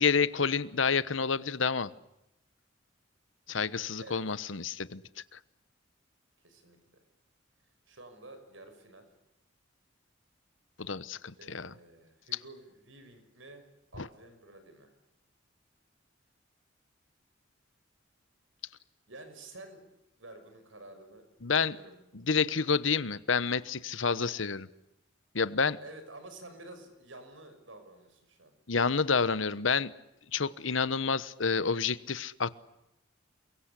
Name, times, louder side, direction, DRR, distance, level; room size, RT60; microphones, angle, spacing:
voice 1, 0.0-1.9 3.5-5.0 5.3-5.4 10.8-11.7 14.0-14.1 21.4-21.8 22.1-24.7 25.3-25.8 28.7-29.9 30.3-32.5, left 5 dB, 80° left, 16 dB, 1.1 m, -29 dB
voice 2, 6.4-6.8 7.9-9.1 11.4-14.9 19.1-19.8 20.2-22.0 25.8-28.5, right 2 dB, 80° right, 8 dB, 6.2 m, -50 dB
29.0 x 23.5 x 8.3 m, 0.88 s
head